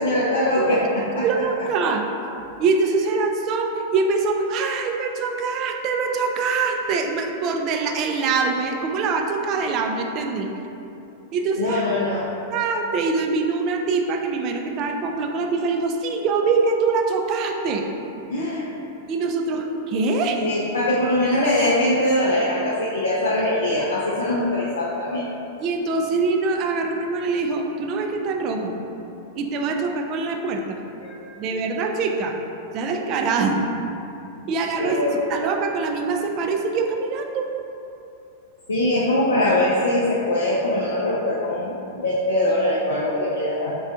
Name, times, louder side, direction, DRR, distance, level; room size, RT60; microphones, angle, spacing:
voice 1, 0.0-1.3 11.6-12.3 18.3-18.7 20.4-25.3 31.0-31.2 34.8-35.2 38.7-43.8, left 1 dB, 75° left, -6 dB, 0.4 m, -22 dB
voice 2, 1.2-2.0 2.6-10.5 11.3-11.8 12.5-17.9 19.1-20.4 25.6-28.8 29.4-30.8 31.4-32.4 32.7-33.6 34.5-37.5, right 4 dB, 40° right, 3 dB, 0.3 m, -24 dB
4.2 x 2.3 x 2.4 m, 2.8 s
figure-of-eight pair, 95°, 0 cm